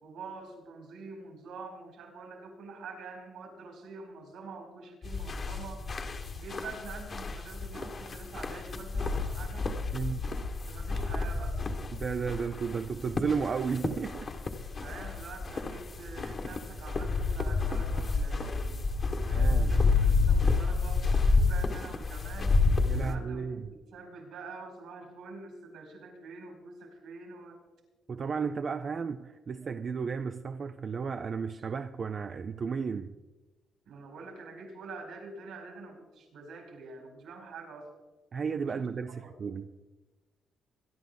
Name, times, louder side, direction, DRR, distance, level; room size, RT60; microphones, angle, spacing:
voice 1, 0.0-5.8 6.4-9.7 10.7-11.6 14.8-18.8 19.2-21.1 21.3-22.6 22.9-27.6 28.8-28.9 33.8-37.9 38.6-38.9 39.2-39.3, right 4 dB, 80° right, 4.8 m, -46 dB
sound 1, 5.0-23.1, left 4 dB, 40° left, 1.5 m, -29 dB
voice 2, 11.9-14.3 19.3-19.8 22.9-23.7 28.1-33.1 38.3-39.7, right 5 dB, 45° right, 0.6 m, -33 dB
23.0 x 11.0 x 4.0 m
cardioid pair, 90°, 0 cm